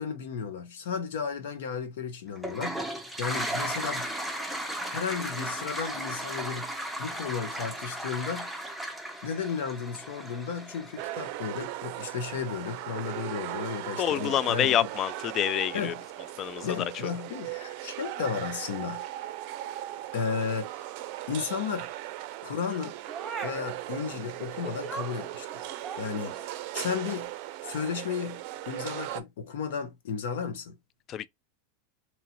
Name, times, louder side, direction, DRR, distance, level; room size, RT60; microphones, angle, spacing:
voice 1, 0.0-4.1 4.9-6.7 7.0-8.6 9.2-14.8 15.7-16.0 16.6-19.0 20.1-20.9 21.3-21.9 22.4-22.9 23.4-25.6 26.0-27.3 27.6-30.8, left 6 dB, 75° left, 1.0 m, -34 dB
Toilet flush, 2.4-11.2, right 1 dB, ahead, 0.6 m, -35 dB
sound 1, 11.0-29.2, right 15 dB, 60° right, 0.4 m, -38 dB
voice 2, 14.0-15.9 16.4-16.9 31.1-31.3, left 11 dB, 40° left, 0.3 m, -27 dB
sound 2, 22.7-23.7 24.6-26.5 27.1-27.3, right 5 dB, 25° right, 0.9 m, -40 dB
3.0 x 2.5 x 2.9 m
hypercardioid pair, 110°, 0 cm